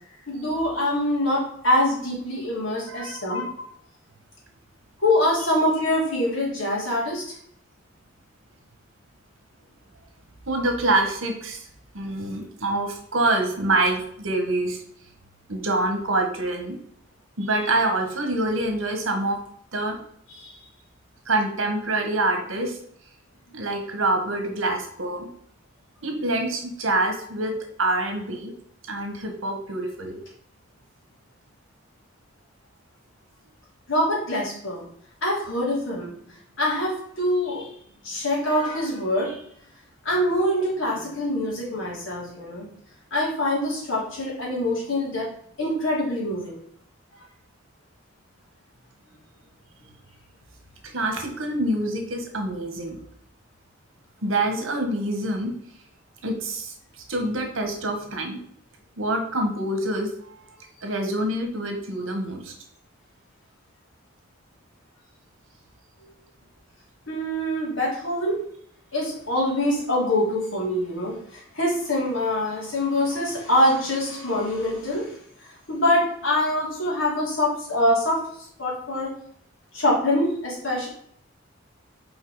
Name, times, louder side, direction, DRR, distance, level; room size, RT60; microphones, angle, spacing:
voice 1, 0.3-3.5 5.0-7.3 20.3-20.6 33.9-34.8 35.2-36.1 36.6-37.7 38.0-39.4 40.0-42.7 43.1-45.3 45.6-46.6 67.1-68.4 68.9-75.1 75.4-78.2 78.6-79.1 79.7-80.9, left 1 dB, 70° left, -5 dB, 3.1 m, -24 dB
voice 2, 2.9-3.2 10.5-11.7 11.9-14.8 15.5-16.8 17.4-19.4 19.7-20.0 21.2-22.8 23.5-25.3 26.0-27.5 27.8-28.5 28.9-30.2 50.8-53.0 54.2-55.5 56.2-58.4 59.0-60.4 60.8-62.5, right 2 dB, 80° right, 4 dB, 1.5 m, -26 dB
5.5 x 4.8 x 4.9 m, 0.64 s
head